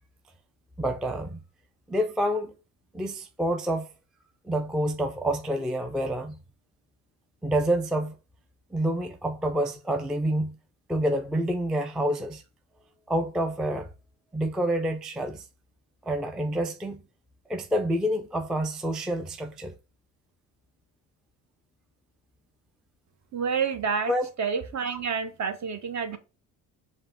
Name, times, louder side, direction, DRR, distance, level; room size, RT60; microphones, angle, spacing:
voice 1, 0.8-1.4 1.9-2.5 2.9-3.9 4.4-6.4 7.4-8.2 8.7-10.6 10.9-12.4 13.1-13.9 14.3-15.5 16.0-17.0 17.5-19.7 24.1-24.3, right 1 dB, ahead, 0.3 m, -28 dB
voice 2, 23.3-24.1 24.4-26.2, right 6 dB, 40° right, 0.8 m, -28 dB
5.0 x 2.1 x 3.9 m
supercardioid pair, 70°, 42 cm